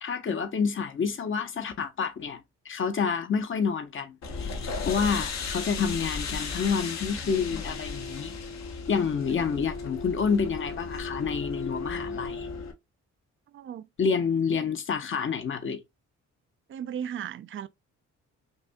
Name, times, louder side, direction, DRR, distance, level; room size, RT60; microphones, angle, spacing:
voice 1, 0.0-8.3 8.9-12.5 14.0-15.8, left 6 dB, 40° left, 0.9 m, -28 dB
sound 1, 4.2-12.7, left 4 dB, 60° left, 1.1 m, -35 dB
voice 2, 13.5-13.9 16.7-17.7, right 9 dB, 40° right, 0.4 m, -36 dB
5.6 x 2.7 x 2.2 m
cardioid pair, 90°, 30 cm